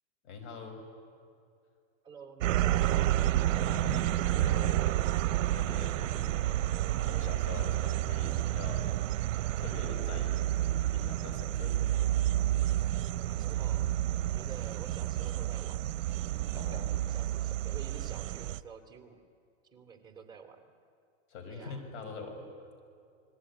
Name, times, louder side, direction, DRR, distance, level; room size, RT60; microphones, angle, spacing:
voice 1, 0.2-0.8 3.5-4.8 5.4-6.4 6.9-8.9 9.6-11.8 16.5-16.9 21.3-22.5, left 4 dB, 60° left, 5 dB, 6.1 m, -44 dB
voice 2, 2.0-3.2 4.3-4.9 13.2-13.9 14.2-16.0 16.5-19.2 19.7-20.7 21.5-21.8, right 6 dB, 10° right, 2 dB, 2.9 m, -50 dB
sound 1, 2.4-18.6, right 13 dB, 70° right, 0.8 m, -30 dB
29.0 x 21.0 x 9.9 m, 2.4 s
supercardioid pair, 140°, 39 cm